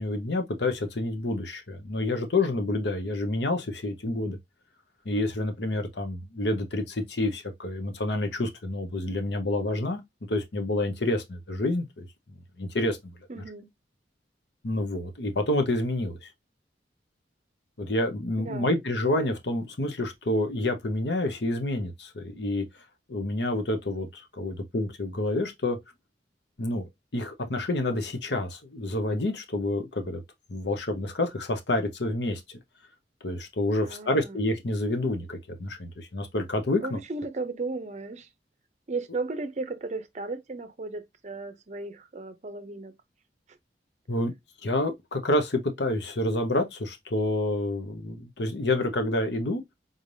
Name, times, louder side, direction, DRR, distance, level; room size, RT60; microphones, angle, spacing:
voice 1, 0.0-4.4 5.0-10.0 10.3-12.1 12.6-13.2 14.6-16.3 17.8-22.6 23.1-25.8 26.6-30.2 30.5-32.6 33.2-37.0 44.1-44.3 44.6-49.6, left 2 dB, 70° left, 0.9 m, -28 dB
voice 2, 13.3-13.7 18.4-18.7 33.8-34.4 36.8-38.3 38.9-42.9, right 3 dB, 40° right, 0.6 m, -35 dB
4.0 x 3.3 x 2.6 m
head